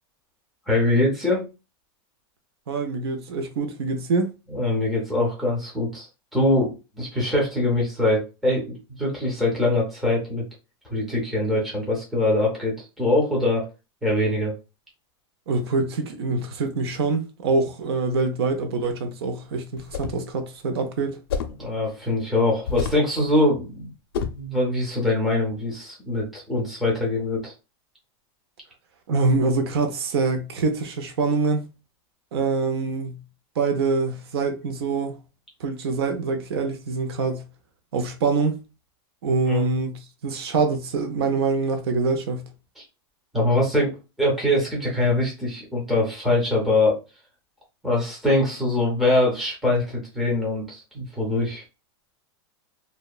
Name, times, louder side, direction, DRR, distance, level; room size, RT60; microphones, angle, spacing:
voice 1, 0.7-1.5 4.5-6.1 6.3-10.4 10.9-13.6 14.0-14.5 21.6-23.9 24.3-27.5 39.5-39.7 42.8-42.9 43.3-47.0 47.8-51.6, left 2 dB, ahead, 0.6 m, -23 dB
voice 2, 2.7-4.3 15.5-21.2 29.1-31.6 32.3-33.2 33.6-35.2 35.6-37.4 37.9-38.6 39.2-42.4, right 4 dB, 70° right, 0.5 m, -25 dB
sound 1, 19.8-20.2 21.3-21.6 22.7-23.1 24.1-24.5, left 6 dB, 60° left, 0.5 m, -28 dB
2.8 x 2.1 x 2.3 m
supercardioid pair, 180°, 14 cm